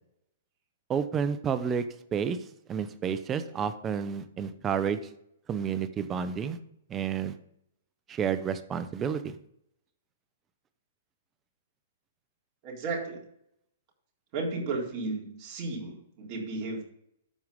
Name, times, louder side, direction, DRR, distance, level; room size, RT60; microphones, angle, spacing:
voice 1, 0.9-1.8 2.1-2.4 2.7-5.0 5.5-6.6 6.9-7.3 8.1-9.3, right 7 dB, 20° right, 12 dB, 0.9 m, -30 dB
voice 2, 12.6-13.3 14.3-16.8, right 3 dB, 40° right, -2 dB, 3.9 m, -34 dB
13.0 x 4.8 x 5.3 m, 0.74 s
hypercardioid pair, 140°, 0 cm